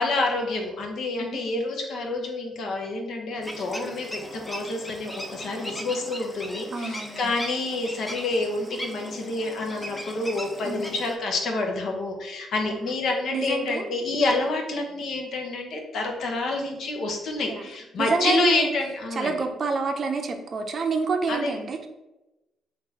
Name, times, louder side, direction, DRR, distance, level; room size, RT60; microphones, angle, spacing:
voice 1, 0.0-19.4 21.3-21.6, left 2 dB, 65° left, 2 dB, 0.8 m, -28 dB
voice 2, 1.2-1.6 6.7-7.4 10.6-10.9 12.7-12.9 13.3-13.9 17.5-17.6 18.0-18.7 19.2-21.9, right 4 dB, 45° right, 4 dB, 0.6 m, -28 dB
sound 1, 3.4-11.2, equal, 10° left, 0.6 m, -38 dB
3.7 x 2.6 x 4.0 m, 1.0 s
cardioid pair, 90°, 0 cm